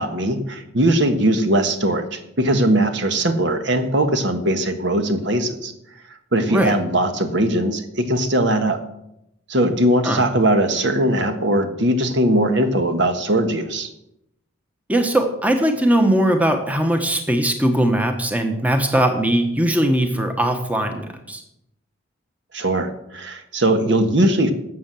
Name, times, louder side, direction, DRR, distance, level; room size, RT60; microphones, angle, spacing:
voice 1, 0.0-5.7 6.3-8.8 9.5-13.9 22.5-24.5, right 1 dB, 60° right, 7 dB, 1.3 m, -20 dB
voice 2, 14.9-21.4, right 1 dB, 5° right, 5 dB, 1.1 m, -20 dB
12.5 x 7.8 x 7.6 m, 0.81 s
head